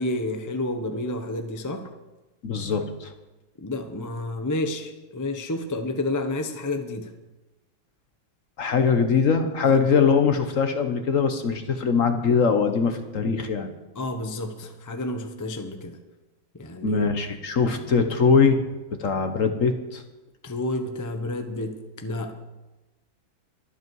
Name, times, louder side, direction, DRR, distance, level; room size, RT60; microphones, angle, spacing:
voice 1, 0.0-1.9 3.6-7.1 9.6-9.8 13.1-13.3 14.0-16.0 16.6-17.0 20.4-22.3, left 2 dB, 25° left, 6 dB, 0.4 m, -30 dB
voice 2, 2.4-3.1 8.6-13.7 16.8-18.6 18.9-20.0, left 5 dB, 50° left, 7 dB, 1.1 m, -22 dB
23.0 x 8.1 x 4.7 m, 1.1 s
omnidirectional pair, 2.1 m